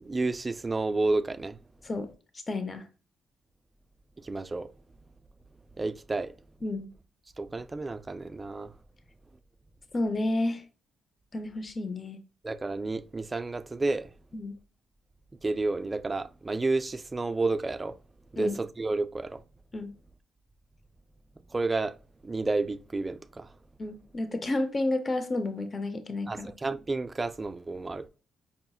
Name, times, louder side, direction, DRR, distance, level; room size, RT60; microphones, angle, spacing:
voice 1, 0.0-1.6 4.2-4.7 5.8-6.3 7.4-8.7 12.4-14.1 15.4-18.0 18.3-19.4 21.5-21.9 22.2-23.5 26.3-28.1, right 3 dB, 25° right, 0.3 m, -30 dB
voice 2, 2.5-2.9 6.6-6.9 9.9-10.6 11.3-12.2 14.3-14.5 18.4-18.6 19.7-19.9 23.8-26.5, left 2 dB, 30° left, 0.5 m, -31 dB
5.4 x 2.8 x 2.3 m
cardioid pair, 90°, 0 cm